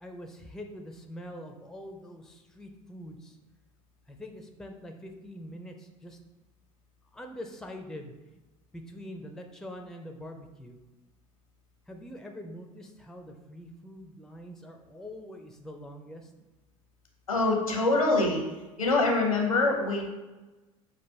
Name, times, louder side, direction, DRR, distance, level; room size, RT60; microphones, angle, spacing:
voice 1, 0.0-3.4 4.1-6.2 7.1-8.1 8.7-10.8 11.9-16.2, equal, 5° left, 4 dB, 0.5 m, -44 dB
voice 2, 17.3-18.4 18.8-20.1, left 2 dB, 90° left, 1 dB, 0.8 m, -24 dB
5.9 x 2.5 x 3.4 m, 1.1 s
figure-of-eight pair, 70°, 17 cm